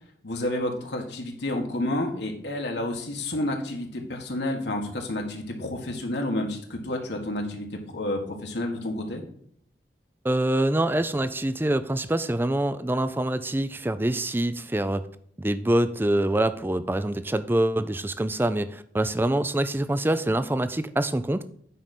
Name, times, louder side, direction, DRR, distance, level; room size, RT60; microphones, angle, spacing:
voice 1, 0.2-9.2, left 1 dB, 75° left, 1 dB, 1.7 m, -30 dB
voice 2, 10.2-15.0 15.4-21.4, right 1 dB, 10° right, 12 dB, 0.4 m, -25 dB
9.1 x 5.1 x 4.3 m, 0.66 s
head